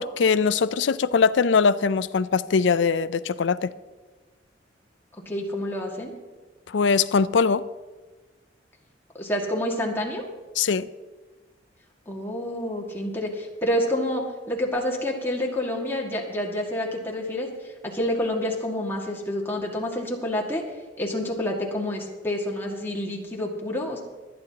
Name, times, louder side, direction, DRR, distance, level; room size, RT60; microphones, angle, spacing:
voice 1, 0.0-3.7 6.7-7.7 10.6-10.9, left 5 dB, 80° left, 0.4 m, -21 dB
voice 2, 5.3-6.1 9.1-10.2 12.1-20.6 21.0-24.0, left 1 dB, 15° left, 1.9 m, -28 dB
24.0 x 9.5 x 2.9 m
head